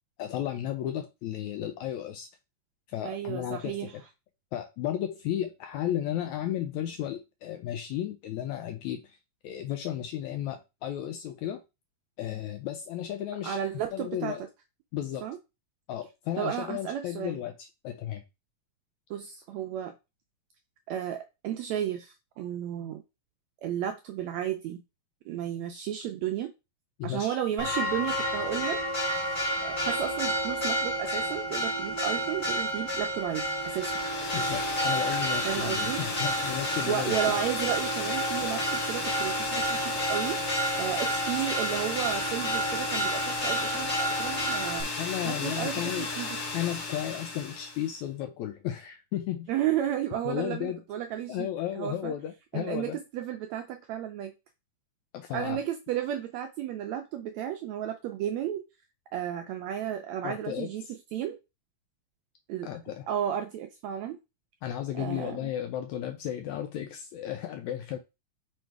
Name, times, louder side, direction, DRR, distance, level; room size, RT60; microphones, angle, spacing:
voice 1, 0.2-2.3 2.9-4.0 4.5-9.2 9.4-11.6 12.2-13.6 13.9-14.4 14.9-15.2 15.9-18.2 27.0-27.4 34.3-37.4 45.0-46.1 46.5-49.5 50.3-50.8 51.3-53.0 55.1-55.6 60.2-60.7 62.6-63.1 64.6-68.0, left 11 dB, 80° left, 1.8 m, -34 dB
voice 2, 3.0-4.0 13.4-14.3 15.2-15.4 16.4-17.4 19.1-19.9 20.9-23.0 23.6-24.8 25.3-26.5 27.0-28.8 29.6-34.0 35.4-36.0 36.9-40.4 40.8-44.9 45.3-46.4 49.5-51.5 51.8-52.1 52.5-54.3 55.3-58.6 59.1-60.8 61.1-61.4 62.5-62.7 63.1-64.2 64.9-65.5, right 10 dB, 90° right, 1.6 m, -33 dB
Church bell, 27.6-44.8, equal, 15° left, 1.0 m, -30 dB
sound 1, 33.5-47.9, left 3 dB, 55° left, 2.3 m, -34 dB
6.3 x 3.3 x 4.6 m
omnidirectional pair, 3.7 m